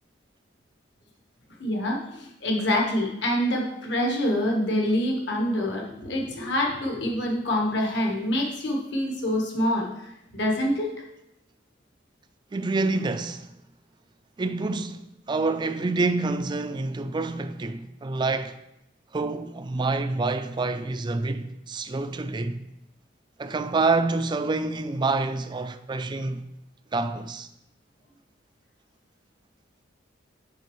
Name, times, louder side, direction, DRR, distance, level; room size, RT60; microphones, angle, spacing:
voice 1, 1.6-10.9, left 1 dB, 65° left, 1.2 m, -26 dB
voice 2, 12.5-13.5 14.4-15.0 15.3-18.6 19.1-22.6 23.4-26.5 26.9-27.5, right 3 dB, 25° right, 0.3 m, -27 dB
9.2 x 5.3 x 3.1 m
head